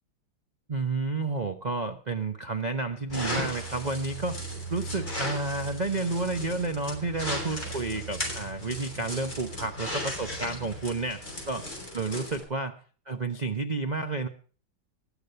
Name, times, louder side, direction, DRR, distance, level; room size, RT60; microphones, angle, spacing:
voice 1, 0.7-4.4 4.7-11.2 11.5-11.7 11.9-12.8 13.1-14.3, right 3 dB, 45° right, 7 dB, 0.5 m, -31 dB
sound 1, 3.1-12.4, equal, 20° left, 5.8 m, -36 dB
20.5 x 7.1 x 5.7 m, 0.40 s
omnidirectional pair, 2.3 m